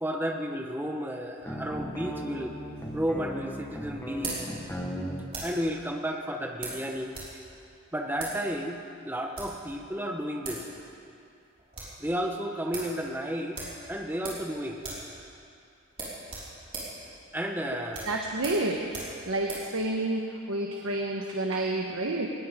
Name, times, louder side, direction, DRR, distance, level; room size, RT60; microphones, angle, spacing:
voice 1, 0.0-2.5 2.9-4.5 5.4-7.2 7.9-10.7 12.0-13.6 13.9-14.8 17.3-18.1, equal, 10° right, 2 dB, 1.0 m, -32 dB
sound 1, 1.4-5.3, equal, 10° left, 1.2 m, -37 dB
sound 2, 2.8-5.7 6.6-7.4 7.6-7.7 8.1-8.4 9.1-9.6 10.2-10.3 10.4-10.7 11.0-11.1 11.4-12.0 12.3-12.4 12.7-12.9 13.5-14.5 14.8-15.1 15.4-15.5 15.9-19.7, right 3 dB, 30° right, 4.9 m, -39 dB
voice 2, 18.1-18.8 19.2-22.3, right 2 dB, 75° right, 0 dB, 1.2 m, -29 dB
19.5 x 19.0 x 3.7 m, 2.5 s
head